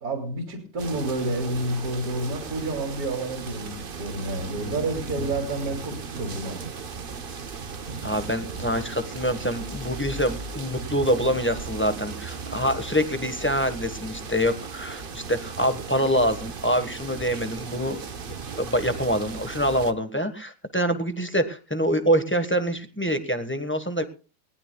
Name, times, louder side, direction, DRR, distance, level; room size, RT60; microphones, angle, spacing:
voice 1, 0.0-6.6, right 2 dB, 60° right, 2 dB, 3.1 m, -29 dB
Korea Seoul Rain Rooftop, 0.8-19.9, right 5 dB, 40° right, 1.0 m, -36 dB
voice 2, 8.0-18.0 18.6-24.0, equal, 10° left, 8 dB, 1.1 m, -25 dB
20.5 x 18.5 x 2.3 m, 0.34 s
omnidirectional pair, 1.8 m